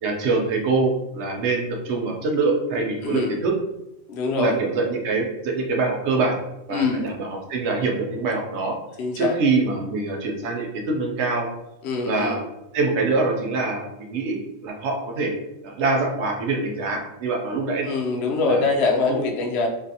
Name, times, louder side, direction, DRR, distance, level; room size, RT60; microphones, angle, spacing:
voice 1, 0.0-3.5 4.4-6.4 6.7-8.8 9.2-11.5 12.1-12.4 12.7-15.3 15.6-17.9 18.5-18.6 19.1-19.2, right 3 dB, 65° right, 1 dB, 0.8 m, -24 dB
voice 2, 3.0-3.4 4.1-4.6 6.7-7.1 9.0-9.3 11.8-12.4 17.8-19.7, left 3 dB, 65° left, 1 dB, 0.7 m, -23 dB
2.6 x 2.4 x 2.6 m, 0.90 s
omnidirectional pair, 1.4 m